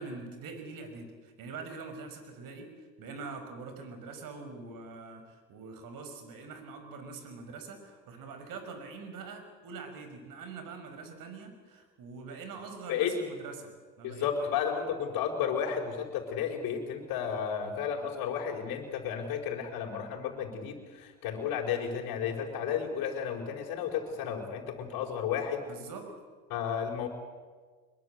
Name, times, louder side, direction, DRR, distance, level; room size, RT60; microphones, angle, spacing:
voice 1, 0.0-2.7 3.0-14.5 25.7-26.1, right 4 dB, 60° right, 7 dB, 5.8 m, -44 dB
voice 2, 14.0-25.6 26.5-27.1, left 8 dB, 60° left, -2 dB, 4.8 m, -33 dB
24.5 x 22.5 x 8.1 m, 1.5 s
hypercardioid pair, 70°, 38 cm